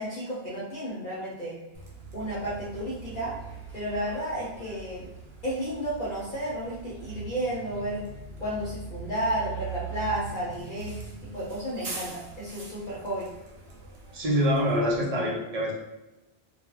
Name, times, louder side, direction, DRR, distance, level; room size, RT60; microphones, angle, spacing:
voice 1, 0.0-1.6 2.1-3.3 3.7-5.1 5.4-8.1 8.4-13.3, right 1 dB, 55° left, -7 dB, 0.8 m, -32 dB
Bus, 1.7-15.0, right 5 dB, 80° right, 0.9 m, -42 dB
voice 2, 14.1-15.7, equal, 45° right, -4 dB, 0.6 m, -25 dB
2.3 x 2.2 x 3.0 m, 1.0 s
omnidirectional pair, 1.0 m